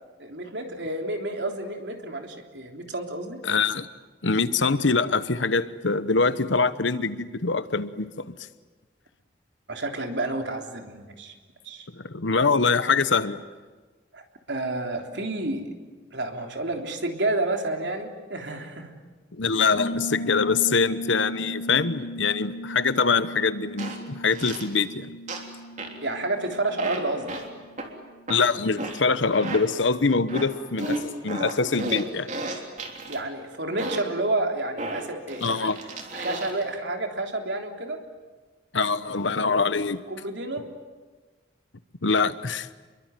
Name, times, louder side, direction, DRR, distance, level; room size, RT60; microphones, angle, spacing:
voice 1, 0.2-3.4 9.7-11.3 11.6-11.9 14.1-15.6 16.1-18.9 26.0-27.3 33.1-35.7 36.1-38.0 40.1-40.7, right 2 dB, 70° right, 3 dB, 3.5 m, -30 dB
voice 2, 3.4-3.9 4.2-8.3 11.9-13.4 19.4-25.1 28.3-32.3 35.4-35.8 38.7-40.0 42.0-42.7, left 4 dB, 85° left, 13 dB, 1.1 m, -24 dB
Piano, 19.8-28.3, equal, 55° left, 3.6 m, -37 dB
sound 1, 23.8-24.0 24.3-24.7 25.3-25.5 25.8-26.0 26.8-27.0 27.3-27.4 27.8-27.9 28.3-28.4 28.8-29.0 29.3-29.6 30.3-30.5 30.8-33.2 33.8-34.1 34.8-36.6, right 2 dB, 40° right, 3.4 m, -33 dB
28.0 x 23.0 x 9.1 m, 1.3 s
head